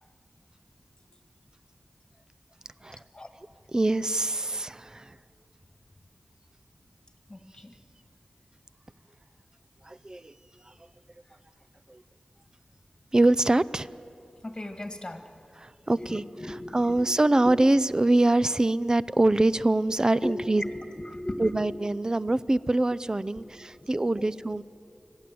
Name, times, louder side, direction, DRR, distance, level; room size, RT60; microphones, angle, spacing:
voice 1, 3.7-5.2 9.8-10.3 11.9-12.0 13.1-13.9 15.6-16.2 16.7-20.6 21.4-24.6, right 2 dB, 25° right, 17 dB, 0.5 m, -24 dB
voice 2, 7.3-7.8 10.6-10.8 14.4-15.3 16.0-17.1 17.4-17.6 20.2-21.8 23.4-24.3, left 1 dB, 30° left, 5 dB, 1.8 m, -38 dB
25.5 x 17.0 x 7.7 m, 2.6 s
wide cardioid pair, 90°, 3 cm